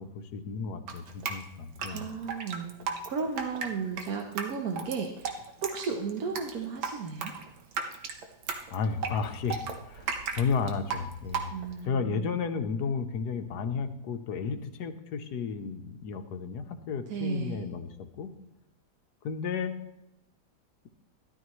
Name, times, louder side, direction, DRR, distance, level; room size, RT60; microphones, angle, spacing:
voice 1, 0.0-2.0 8.7-11.5 11.9-18.3 19.2-19.7, left 5 dB, 65° left, 8 dB, 1.2 m, -33 dB
Drip, 0.9-11.9, right 5 dB, 90° right, 1.9 m, -36 dB
voice 2, 1.8-2.8 3.1-5.3 5.6-7.3 11.5-12.2 17.1-17.6, right 5 dB, 60° right, 3 dB, 1.3 m, -34 dB
12.5 x 12.0 x 3.1 m, 0.88 s
omnidirectional pair, 2.1 m